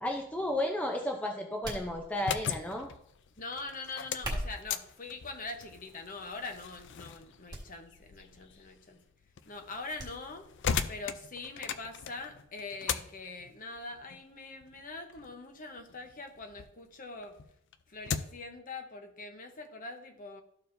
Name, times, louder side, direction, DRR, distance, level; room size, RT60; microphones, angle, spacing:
voice 1, 0.0-2.9, left 1 dB, 5° left, 1 dB, 0.5 m, -33 dB
sound 1, 1.6-2.4 4.1-4.8 5.6-5.9 6.4-6.5 7.5-7.7 8.0-8.1 10.0-10.1 10.5-10.6, right 1 dB, 20° right, 1.5 m, -39 dB
sound 2, 2.0-16.7 17.1-18.5, left 7 dB, 55° left, 0.4 m, -40 dB
voice 2, 3.4-9.0 9.5-10.5 10.9-17.3 17.9-20.4, left 3 dB, 40° left, 5 dB, 0.9 m, -43 dB
13.5 x 4.6 x 2.6 m, 0.73 s
head